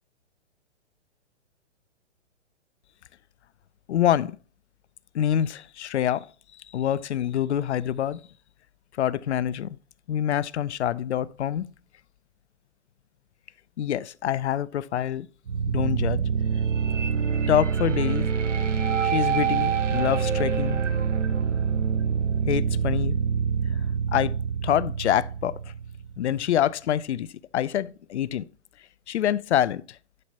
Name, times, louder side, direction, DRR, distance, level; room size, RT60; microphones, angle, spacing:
voice 1, 3.9-4.4 5.1-6.3 6.7-8.2 9.0-9.8 10.1-11.7 13.8-15.3 15.7-16.2 17.5-18.3 19.0-20.8 22.5-23.2 24.1-24.3 24.6-25.6 26.2-27.3 27.5-28.4 29.1-30.0, left 10 dB, 70° left, 0.5 m, -26 dB
sound 1, 15.5-26.4, right 7 dB, 90° right, 0.8 m, -26 dB
11.0 x 4.4 x 2.8 m
figure-of-eight pair, 120°, 36 cm